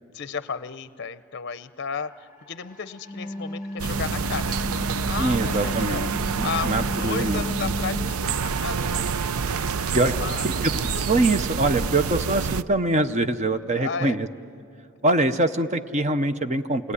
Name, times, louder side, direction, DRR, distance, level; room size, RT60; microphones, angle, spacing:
voice 1, 0.1-4.7 5.0-6.1 6.4-10.7 13.7-14.2, left 6 dB, 50° left, 13 dB, 0.6 m, -34 dB
sound 1, 1.8-12.0, left 3 dB, 10° right, 1.6 m, -49 dB
Wind instrument woodwind instrument, 2.9-8.2, left 1 dB, 15° left, 1.1 m, -33 dB
sound 2, 3.8-12.6, right 5 dB, 85° right, 0.5 m, -27 dB
voice 2, 5.2-6.1 6.4-7.5 9.9-10.1 10.4-10.7 11.1-14.3 15.0-16.9, right 2 dB, 30° right, 9 dB, 0.6 m, -23 dB
28.0 x 20.0 x 9.7 m, 2.6 s
head